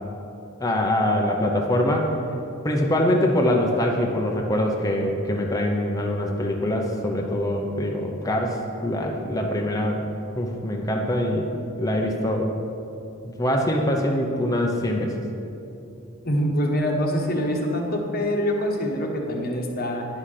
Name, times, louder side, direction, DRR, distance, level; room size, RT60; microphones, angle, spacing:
voice 1, 0.6-2.1 2.6-10.0 10.4-11.5 11.8-12.5 13.2-15.2, left 1 dB, 15° left, 0 dB, 0.8 m, -23 dB
voice 2, 16.2-20.1, equal, 45° left, 1 dB, 1.2 m, -25 dB
9.9 x 5.7 x 6.6 m, 2.8 s
head